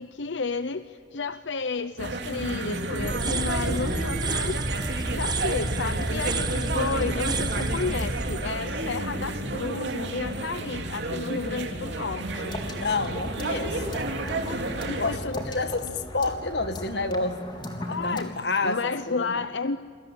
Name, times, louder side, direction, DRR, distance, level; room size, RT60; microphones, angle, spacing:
voice 1, 0.0-4.6 5.1-12.6 14.5-15.4 17.8-18.3 18.6-19.8, left 4 dB, 90° left, 12 dB, 0.8 m, -32 dB
sound 1, 2.0-15.2, right 2 dB, 70° right, 3.1 m, -31 dB
sound 2, 3.0-9.8, right 2 dB, 25° right, 1.3 m, -30 dB
sound 3, 12.1-18.3, left 1 dB, 25° left, 3.5 m, -38 dB
voice 2, 12.7-14.0 14.4-17.4 17.9-19.5, left 3 dB, 65° left, 9 dB, 1.9 m, -30 dB
28.5 x 22.5 x 9.0 m, 2.1 s
head